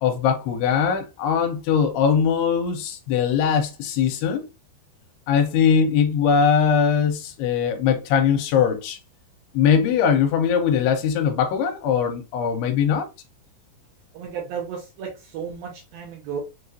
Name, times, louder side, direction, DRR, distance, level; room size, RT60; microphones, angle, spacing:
voice 1, 0.0-4.5 5.3-9.0 9.5-13.1, left 7 dB, 90° left, 2.8 m, -21 dB
voice 2, 14.1-16.4, right 7 dB, 75° right, 2.3 m, -33 dB
6.4 x 2.4 x 2.7 m
omnidirectional pair, 4.8 m